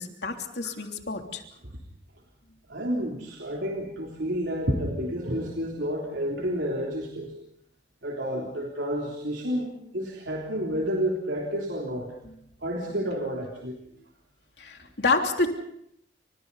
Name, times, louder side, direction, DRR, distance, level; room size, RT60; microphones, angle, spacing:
voice 1, 0.0-1.4 14.6-15.5, left 3 dB, 65° left, 3 dB, 3.2 m, -28 dB
voice 2, 2.7-7.3 8.0-12.1 12.6-13.8, equal, 80° right, 1 dB, 3.4 m, -30 dB
30.0 x 27.0 x 4.1 m, 0.74 s
head